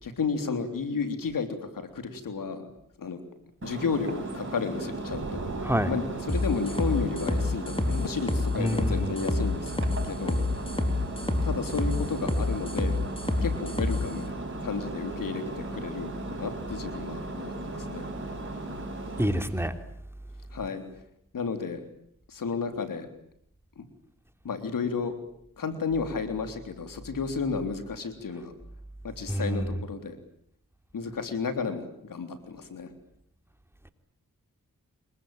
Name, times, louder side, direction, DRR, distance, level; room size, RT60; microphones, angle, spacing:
voice 1, 0.0-2.7 3.0-3.2 3.6-5.4 5.9-9.8 10.0-10.4 11.4-13.0 13.4-18.1 20.5-20.8 21.3-21.9 22.3-23.1 23.8-23.9 24.4-25.1 25.6-28.5 29.0-30.2 30.9-32.9, left 5 dB, 80° left, 8 dB, 3.6 m, -32 dB
Engine, 3.6-19.3, right 2 dB, 40° right, 6.6 m, -37 dB
Thunder / Rain, 3.7-19.7, right 3 dB, 60° right, 5.2 m, -46 dB
sound 1, 6.3-14.1, left 2 dB, 15° left, 4.1 m, -28 dB
voice 2, 8.6-9.1 19.2-19.7 29.3-29.8, equal, 5° right, 8 dB, 3.3 m, -27 dB
27.0 x 22.5 x 9.0 m, 0.72 s
cardioid pair, 45°, 33 cm